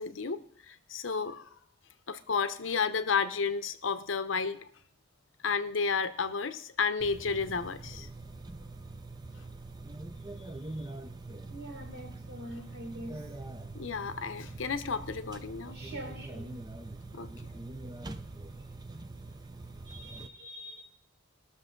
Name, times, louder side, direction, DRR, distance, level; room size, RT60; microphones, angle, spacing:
voice 1, 0.0-1.6 2.1-4.7 5.4-8.1 13.7-15.8 17.1-17.3, left 5 dB, 75° left, 0.8 m, -32 dB
sound 1, 7.0-20.3, right 2 dB, 20° right, 0.6 m, -44 dB
voice 2, 11.5-13.3 15.7-16.6 17.9-18.0 19.9-20.8, right 1 dB, 65° right, 2.2 m, -44 dB
20.0 x 6.7 x 3.8 m
head